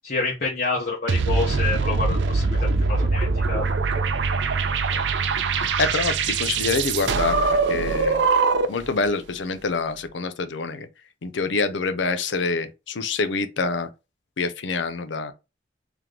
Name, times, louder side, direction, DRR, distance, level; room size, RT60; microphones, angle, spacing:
voice 1, 0.0-2.5 2.8-3.6, left 3 dB, 50° left, 1.0 m, -27 dB
sound 1, 1.1-8.9, right 4 dB, 75° right, 0.5 m, -22 dB
voice 2, 5.8-8.2 8.7-10.9 11.2-13.9 14.4-15.3, left 4 dB, 80° left, 0.6 m, -26 dB
3.4 x 3.0 x 3.7 m
head